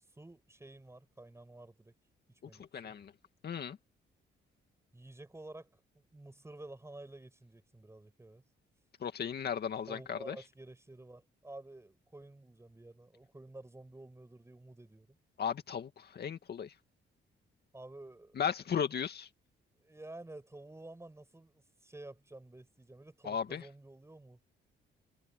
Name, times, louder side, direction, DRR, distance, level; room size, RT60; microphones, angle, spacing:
voice 1, 0.0-1.9 2.4-2.9 4.9-8.4 9.9-15.2 17.7-18.4 19.8-24.4, right 2 dB, 15° right, 7.5 m, -51 dB
voice 2, 2.7-3.1 3.4-3.8 9.0-10.4 15.4-16.7 18.4-19.3 23.3-23.6, left 7 dB, 55° left, 2.1 m, -35 dB
cardioid pair, 90°, 20 cm